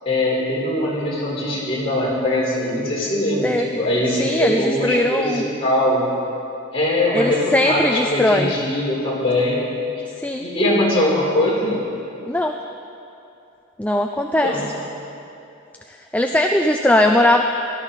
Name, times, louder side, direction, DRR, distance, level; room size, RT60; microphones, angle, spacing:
voice 1, 0.0-6.0 6.7-9.6 10.4-11.8 14.2-14.7, left 1 dB, 30° left, -7 dB, 4.3 m, -21 dB
voice 2, 4.2-5.4 7.1-8.5 10.2-10.5 12.3-12.5 13.8-14.6 16.1-17.4, left 1 dB, 5° left, 4 dB, 0.3 m, -19 dB
17.5 x 13.5 x 4.1 m, 2.7 s
head